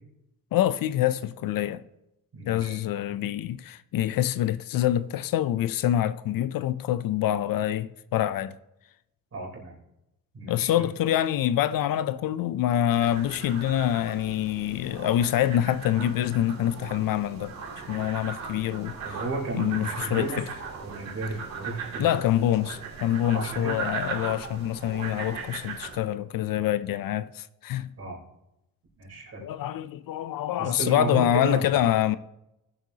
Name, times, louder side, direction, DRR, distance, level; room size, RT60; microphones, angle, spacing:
voice 1, 0.5-1.8 2.5-8.5 10.5-17.6 17.9-18.9 19.5-20.5 22.0-27.9 29.4-32.2, left 12 dB, 65° left, 0.5 m, -26 dB
voice 2, 2.3-2.8 9.3-9.8 10.3-10.9 19.0-20.4 20.8-22.3 23.3-23.8 28.0-28.2 29.0-29.5 30.6-31.8, right 3 dB, 45° right, 3.7 m, -34 dB
sound 1, 12.9-26.0, right 5 dB, 65° right, 3.4 m, -38 dB
18.5 x 7.9 x 2.8 m
cardioid pair, 150°, 36 cm